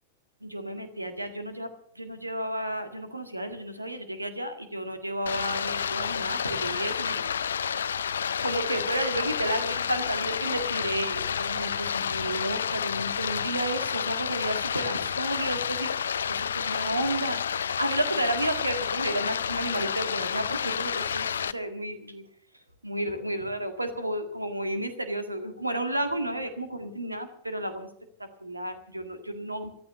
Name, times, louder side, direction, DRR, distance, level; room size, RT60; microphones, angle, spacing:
voice 1, 0.4-1.7 2.0-7.3 8.4-22.2 22.8-27.9 28.4-29.7, right 1 dB, 85° right, 8 dB, 1.9 m, -32 dB
Stream, 5.3-21.5, left 7 dB, 70° left, 0.5 m, -30 dB
14.5 x 13.0 x 6.8 m, 0.65 s
figure-of-eight pair, 90°, 0 cm